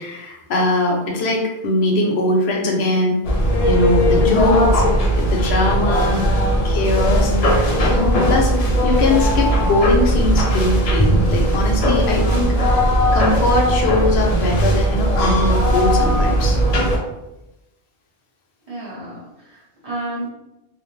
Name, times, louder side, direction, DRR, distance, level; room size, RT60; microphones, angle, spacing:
voice 1, 0.0-3.2 3.6-4.8 5.2-6.1 6.6-16.6, left 2 dB, 90° left, 0 dB, 0.9 m, -21 dB
sound 1, 3.2-17.0, equal, 50° left, 0.4 m, -18 dB
voice 2, 5.8-6.3 11.9-12.2 18.7-20.3, right 1 dB, 35° right, -8 dB, 1.1 m, -31 dB
2.5 x 2.0 x 3.1 m, 0.94 s
omnidirectional pair, 1.0 m